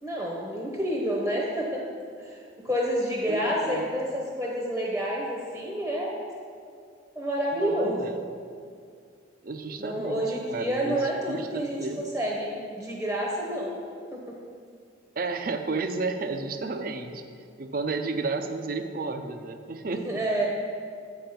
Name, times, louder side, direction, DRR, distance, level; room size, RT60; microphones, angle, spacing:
voice 1, 0.0-1.8 2.2-6.2 7.1-8.1 9.8-13.7 14.1-14.2 19.9-20.5, equal, 5° right, -3 dB, 0.8 m, -29 dB
voice 2, 3.3-3.9 7.5-8.1 9.4-12.0 15.2-17.2 17.6-20.2, right 3 dB, 45° right, 7 dB, 0.5 m, -32 dB
8.3 x 5.3 x 5.7 m, 2.2 s
head